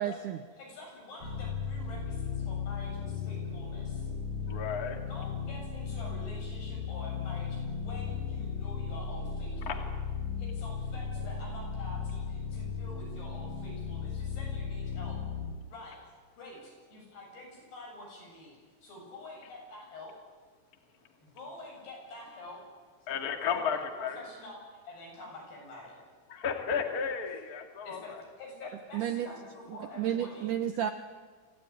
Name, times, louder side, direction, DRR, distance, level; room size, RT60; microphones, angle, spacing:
voice 1, 0.0-0.4 28.9-29.3 30.0-30.9, right 10 dB, 80° right, 9 dB, 1.9 m, -31 dB
voice 2, 0.6-4.1 5.1-9.9 10.4-15.2 15.7-16.0 16.3-18.5 18.8-20.1 21.2-22.6 23.5-26.0 27.8-30.5, left 2 dB, 75° left, -1 dB, 9.9 m, -47 dB
sound 1, 1.2-15.5, left 6 dB, 60° left, 7.0 m, -36 dB
voice 3, 4.5-5.0 9.7-9.8 23.1-24.2 26.3-28.0, left 6 dB, 30° left, 5 dB, 1.9 m, -33 dB
26.0 x 16.5 x 9.8 m, 1.5 s
omnidirectional pair, 4.8 m